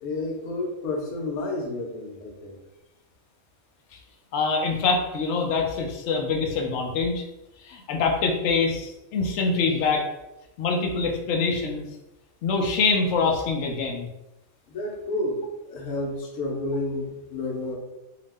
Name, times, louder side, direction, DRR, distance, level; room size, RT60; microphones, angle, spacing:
voice 1, 0.0-2.6 14.7-17.8, left 2 dB, 90° left, 0 dB, 1.1 m, -30 dB
voice 2, 4.3-7.2 7.6-10.1 10.6-11.9 12.4-14.1, left 4 dB, 65° left, 2 dB, 0.8 m, -24 dB
2.8 x 2.0 x 3.3 m, 0.94 s
omnidirectional pair, 1.5 m